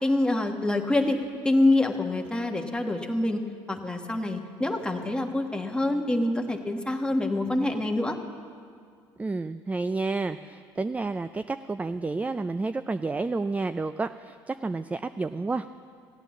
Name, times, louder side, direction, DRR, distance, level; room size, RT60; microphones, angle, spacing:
voice 1, 0.0-3.4 3.7-8.2, left 2 dB, 10° left, 3 dB, 1.4 m, -26 dB
voice 2, 9.2-15.7, right 3 dB, 15° right, 11 dB, 0.3 m, -30 dB
15.5 x 9.0 x 7.3 m, 2.1 s
supercardioid pair, 80°, 10 cm